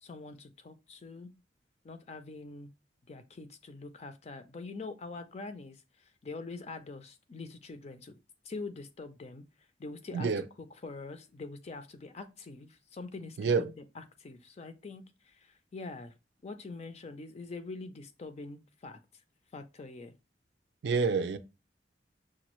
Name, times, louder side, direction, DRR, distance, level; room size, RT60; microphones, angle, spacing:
voice 1, 0.0-1.3 1.8-2.7 3.1-8.2 8.4-9.4 9.8-16.1 16.4-19.0 19.5-20.1, left 3 dB, 40° left, 0.4 m, -44 dB
voice 2, 13.4-13.7 20.8-21.4, right 4 dB, 70° right, 0.4 m, -27 dB
5.9 x 2.4 x 3.0 m
head